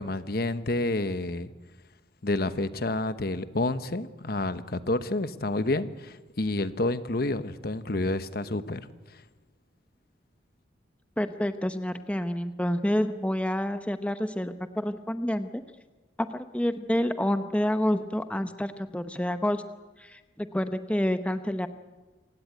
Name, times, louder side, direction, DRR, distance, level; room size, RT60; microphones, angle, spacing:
voice 1, 0.0-1.5 2.2-8.8, left 2 dB, 55° left, 12 dB, 1.1 m, -29 dB
voice 2, 11.2-15.5 16.3-19.6 20.0-21.7, equal, 5° left, 9 dB, 0.7 m, -28 dB
27.0 x 16.5 x 9.1 m, 1.3 s
head